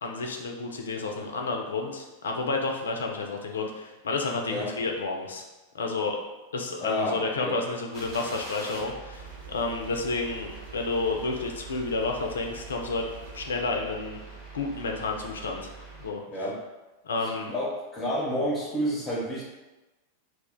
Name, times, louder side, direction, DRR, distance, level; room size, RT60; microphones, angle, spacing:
voice 1, 0.0-5.4 5.7-6.2 6.5-13.1 13.3-14.2 14.5-15.7 16.0-16.2 17.0-17.5, left 3 dB, 70° left, 2 dB, 0.4 m, -30 dB
voice 2, 6.8-7.6 16.3-16.6 17.2-19.4, equal, 20° left, -4 dB, 0.7 m, -30 dB
sound 1, 7.9-16.1, right 3 dB, 30° right, 1.0 m, -44 dB
sound 2, 9.1-13.5, right 8 dB, 60° right, 0.5 m, -49 dB
2.4 x 2.1 x 3.6 m, 1.1 s
figure-of-eight pair, 90°, 0 cm